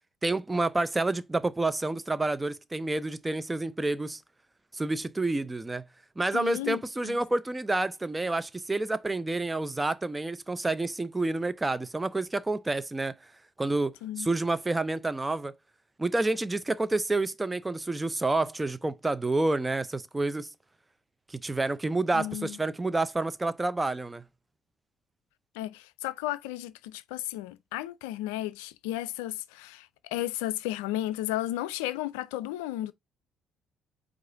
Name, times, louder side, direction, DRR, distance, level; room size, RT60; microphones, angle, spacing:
voice 1, 0.2-4.2 4.7-5.9 6.2-13.2 13.6-15.5 16.0-20.5 21.3-24.2, right 2 dB, 20° right, 0.5 m, -29 dB
voice 2, 6.3-7.2 14.0-14.3 22.1-22.6 25.6-32.9, left 14 dB, 85° left, 0.3 m, -34 dB
4.8 x 2.5 x 3.8 m
hypercardioid pair, 55°, 0 cm